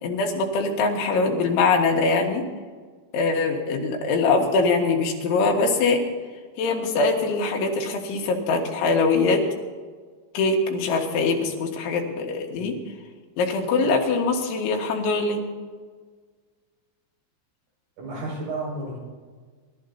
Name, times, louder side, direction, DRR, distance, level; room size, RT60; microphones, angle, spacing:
voice 1, 0.0-2.5 3.1-6.0 6.6-9.4 10.3-12.8 13.4-15.4, left 3 dB, 75° left, 1 dB, 4.0 m, -23 dB
voice 2, 18.0-19.0, right 2 dB, 70° right, -5 dB, 8.4 m, -32 dB
28.5 x 13.0 x 2.8 m, 1.5 s
omnidirectional pair, 5.5 m